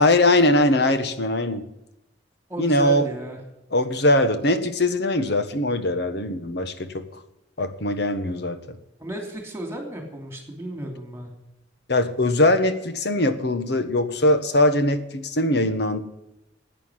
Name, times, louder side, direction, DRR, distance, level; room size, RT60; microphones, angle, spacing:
voice 1, 0.0-1.6 2.6-3.1 3.7-7.1 7.6-8.8 11.9-16.0, left 1 dB, 65° left, 10 dB, 1.4 m, -21 dB
voice 2, 2.5-3.4 9.0-11.3, right 1 dB, 15° right, 4 dB, 3.0 m, -33 dB
11.0 x 9.4 x 9.4 m, 0.88 s
head